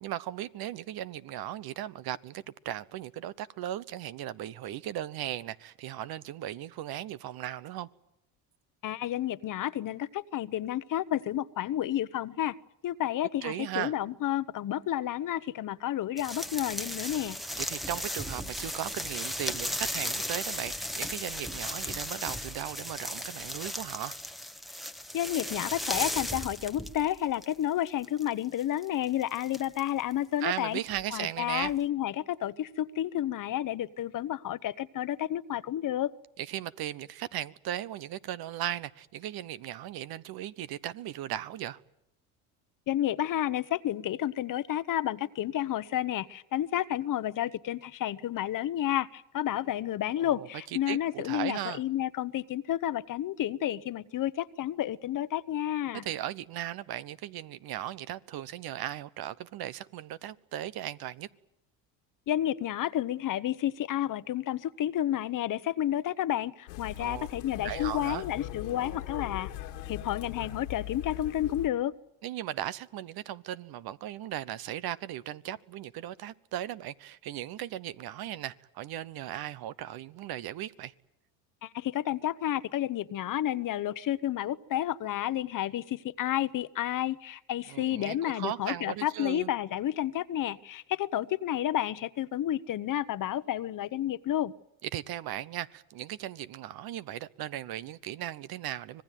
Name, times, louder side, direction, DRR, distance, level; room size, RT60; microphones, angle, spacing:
voice 1, 0.0-7.9 13.4-13.9 17.6-24.2 30.4-31.7 36.4-41.8 50.2-50.5 50.9-51.8 56.0-61.3 67.0-67.3 67.6-68.2 72.2-80.9 87.7-89.5 94.9-99.0, right 12 dB, 60° right, 1.0 m, -37 dB
voice 2, 8.8-12.5 12.8-17.4 25.1-30.8 31.1-36.1 42.9-56.0 62.3-69.5 69.9-71.9 81.6-94.5, left 12 dB, 50° left, 1.0 m, -31 dB
sound 1, 16.2-27.5 27.9-30.1 30.9-31.0 31.6-31.8, equal, ahead, 1.2 m, -36 dB
sound 2, 66.7-71.7, left 13 dB, 90° left, 2.4 m, -40 dB
25.5 x 19.0 x 9.2 m
supercardioid pair, 85°, 42 cm